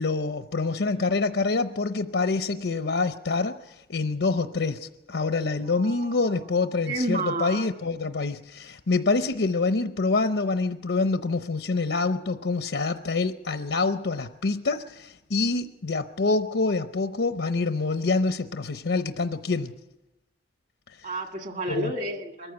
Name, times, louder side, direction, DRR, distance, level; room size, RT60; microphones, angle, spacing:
voice 1, 0.0-19.7 21.7-21.9, left 3 dB, 75° left, 9 dB, 0.7 m, -26 dB
voice 2, 5.6-6.2 6.9-7.7 21.0-22.5, right 2 dB, 45° right, 5 dB, 1.8 m, -31 dB
22.5 x 15.0 x 7.9 m, 0.98 s
head